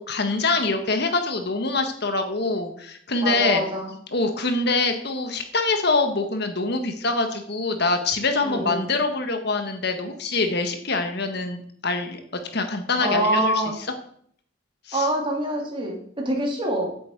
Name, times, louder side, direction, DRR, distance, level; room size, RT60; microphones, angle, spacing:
voice 1, 0.1-3.6 4.1-12.2 12.5-13.5 14.9-15.1, left 3 dB, 60° left, 6 dB, 1.5 m, -24 dB
voice 2, 3.2-3.9 8.4-8.9 13.0-13.7 14.9-16.9, right 1 dB, 25° right, 0 dB, 3.3 m, -25 dB
8.7 x 7.9 x 8.1 m, 0.63 s
head